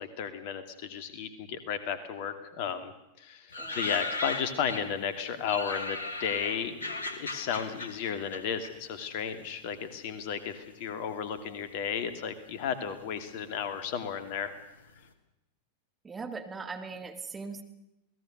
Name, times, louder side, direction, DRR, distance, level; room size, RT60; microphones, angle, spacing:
voice 1, 0.0-2.9 3.2-3.5 3.7-14.5, left 7 dB, 45° left, 10 dB, 2.5 m, -34 dB
sound 1, 3.5-5.0 5.5-9.3 9.6-10.5 11.1-11.7 11.9-12.0 12.3-14.6 14.9-15.0, left 2 dB, 70° left, 2.4 m, -37 dB
voice 2, 16.0-17.6, right 4 dB, 15° right, 6 dB, 2.3 m, -39 dB
28.5 x 19.0 x 6.6 m, 0.86 s
figure-of-eight pair, 90°, 0 cm